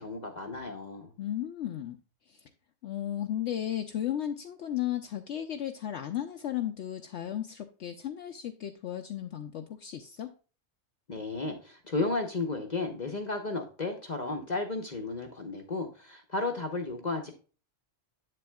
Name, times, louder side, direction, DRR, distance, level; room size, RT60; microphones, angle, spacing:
voice 1, 0.0-1.1 11.1-17.3, left 3 dB, 40° left, 4 dB, 0.8 m, -33 dB
voice 2, 1.2-2.0 2.3-2.5 2.8-10.3, left 11 dB, 65° left, 6 dB, 0.8 m, -34 dB
7.6 x 7.6 x 2.2 m, 0.36 s
omnidirectional pair, 1.4 m